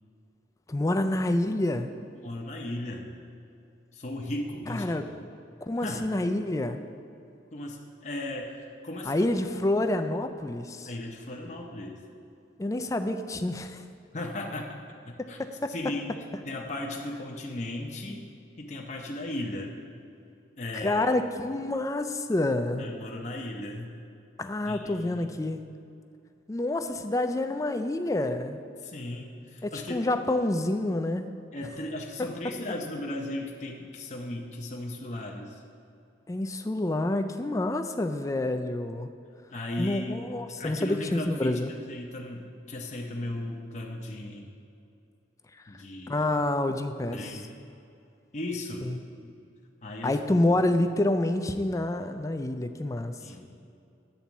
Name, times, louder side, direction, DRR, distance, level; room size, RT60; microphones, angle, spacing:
voice 1, 0.7-1.9 4.7-5.0 5.6-6.8 9.0-10.9 12.6-13.8 15.2-15.9 20.8-22.9 24.4-25.7 26.5-28.6 29.6-31.3 32.2-32.3 36.3-39.1 39.8-41.7 45.5-45.7 46.1-47.4 48.8-49.0 49.2-49.3 50.0-53.1, left 1 dB, 15° left, 8 dB, 0.3 m, -28 dB
voice 2, 2.2-3.1 3.9-5.0 5.8-6.0 7.5-9.2 10.9-12.0 14.1-14.8 15.1-15.4 15.7-16.1 16.4-18.3 18.6-19.7 20.6-21.0 22.8-24.0 24.7-25.3 28.8-30.0 31.5-35.6 39.5-40.3 40.6-44.5 45.7-46.3 47.1-47.5 48.3-48.9 49.8-50.2 53.2-53.6, left 1 dB, 40° left, 0 dB, 0.7 m, -36 dB
9.1 x 4.2 x 7.1 m, 2.6 s
head